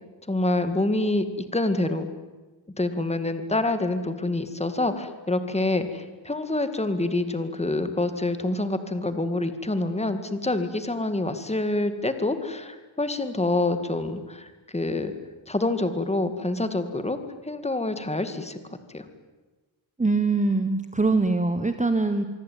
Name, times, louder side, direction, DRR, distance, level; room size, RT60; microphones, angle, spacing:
voice 1, 0.3-2.1 2.8-15.1 15.5-17.2 17.4-18.6 18.9-19.1, left 2 dB, 15° left, 9 dB, 2.1 m, -26 dB
voice 2, 20.0-22.2, right 3 dB, 15° right, 8 dB, 1.3 m, -23 dB
25.5 x 24.0 x 9.3 m, 1.2 s
wide cardioid pair, 140°, 47 cm